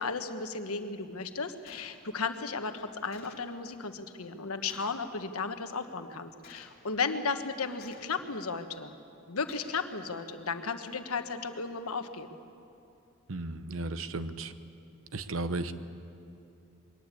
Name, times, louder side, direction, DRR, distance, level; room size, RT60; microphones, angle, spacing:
voice 1, 0.0-8.9 9.3-12.3, left 4 dB, 85° left, 8 dB, 1.3 m, -35 dB
Gunshot gunfire, 1.7-2.0 3.1-3.5 4.7-5.1 6.4-6.8 7.8-8.3 9.5-9.9, left 4 dB, 45° left, 2.5 m, -53 dB
voice 2, 13.3-14.5 15.1-15.7, right 2 dB, 65° right, 11 dB, 1.0 m, -34 dB
22.0 x 19.0 x 8.5 m, 2.7 s
head